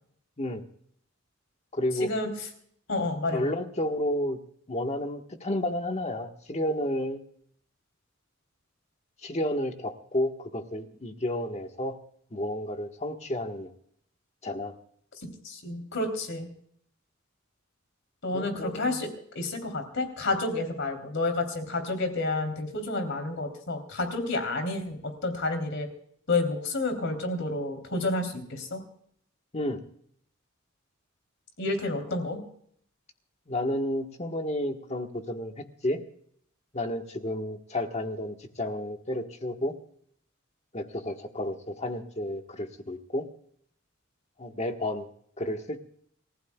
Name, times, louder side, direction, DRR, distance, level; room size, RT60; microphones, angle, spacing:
voice 1, 1.7-2.1 3.3-4.4 4.7-7.2 9.2-12.0 12.3-13.7 14.4-14.7 18.3-19.0 29.5-29.8 33.5-36.0 36.7-39.7 40.7-43.3 44.4-45.1 45.4-45.8, left 1 dB, 35° left, 5 dB, 1.4 m, -31 dB
voice 2, 2.9-3.5 15.2-16.5 18.2-19.1 19.3-25.9 26.3-28.8 31.6-32.4, left 2 dB, 65° left, 5 dB, 3.3 m, -30 dB
28.0 x 15.5 x 2.3 m, 0.64 s
head